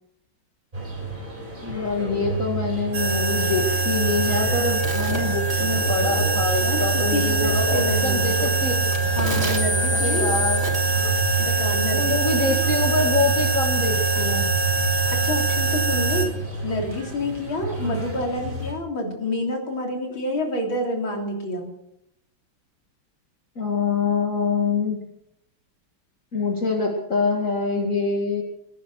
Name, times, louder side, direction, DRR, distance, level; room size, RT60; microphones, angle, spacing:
sound 1, 0.7-18.7, right 2 dB, 25° right, 5.1 m, -33 dB
voice 1, 1.6-9.0 9.9-10.6 11.9-14.5 17.8-18.0 23.6-25.0 26.3-28.4, left 3 dB, 40° left, 0 dB, 2.4 m, -25 dB
sound 2, 2.9-16.3, right 4 dB, 80° right, 3.9 m, -23 dB
voice 2, 6.6-8.3 9.2-10.4 11.4-12.6 15.1-21.8, left 1 dB, 85° left, 1 dB, 4.2 m, -28 dB
22.0 x 10.5 x 6.4 m, 0.76 s
omnidirectional pair, 2.2 m